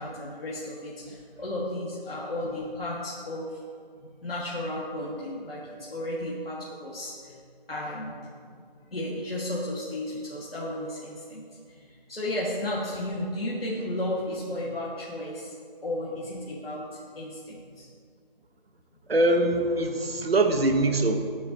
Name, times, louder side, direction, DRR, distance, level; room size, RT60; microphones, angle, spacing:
voice 1, 0.0-3.6 4.0-7.3 7.7-8.3 8.9-15.5 15.8-17.9, left 1 dB, 75° left, -6 dB, 1.9 m, -34 dB
voice 2, 19.1-21.2, right 2 dB, 80° right, 6 dB, 1.2 m, -23 dB
11.5 x 9.1 x 2.9 m, 2.2 s
figure-of-eight pair, 180°, 30 cm